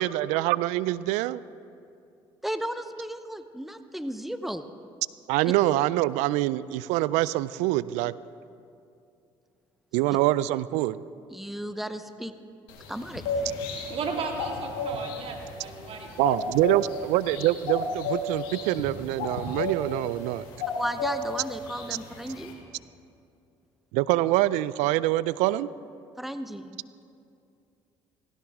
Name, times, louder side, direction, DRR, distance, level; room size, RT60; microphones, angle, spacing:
voice 1, 0.0-1.4 5.3-8.1 9.9-11.0 16.2-20.4 23.9-25.7, right 16 dB, 75° right, 19 dB, 0.4 m, -25 dB
voice 2, 2.4-4.7 11.3-12.3 12.9-13.2 20.7-22.5 26.2-26.8, right 1 dB, ahead, 10 dB, 0.8 m, -34 dB
sound 1, 12.7-22.5, left 3 dB, 85° left, 2.1 m, -34 dB
voice 3, 13.9-16.1, right 4 dB, 50° right, 2 dB, 2.3 m, -34 dB
17.0 x 16.0 x 3.6 m, 2.5 s
hypercardioid pair, 65°, 12 cm